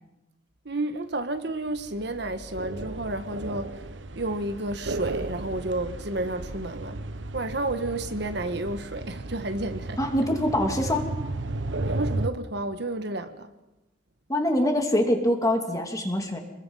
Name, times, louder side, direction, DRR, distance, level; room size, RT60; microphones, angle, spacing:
voice 1, 0.6-7.0 7.3-10.0 11.8-13.5, right 2 dB, 65° right, 1.4 m, -31 dB
sound 1, 1.7-12.3, right 2 dB, 80° right, 1.1 m, -34 dB
voice 2, 10.0-11.1 14.3-16.4, left 1 dB, 20° left, 2.7 m, -24 dB
28.0 x 21.5 x 5.6 m
head